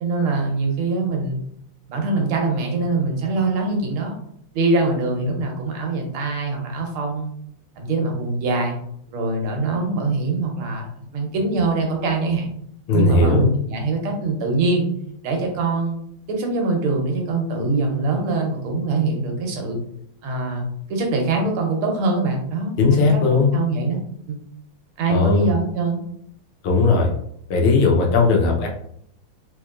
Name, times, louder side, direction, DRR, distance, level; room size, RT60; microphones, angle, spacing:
voice 1, 0.0-1.4 1.9-4.1 4.5-7.3 7.8-8.8 9.1-12.5 12.9-14.9 15.2-16.0 16.3-19.8 20.2-23.1 23.5-24.0 24.3-24.4 25.0-26.0, right 3 dB, 80° right, 2 dB, 1.7 m, -23 dB
voice 2, 12.9-13.5 22.8-23.5 25.1-25.4 26.6-27.1 27.5-28.7, left 3 dB, 85° left, 0 dB, 1.7 m, -17 dB
4.0 x 3.0 x 2.4 m, 0.69 s
omnidirectional pair, 2.3 m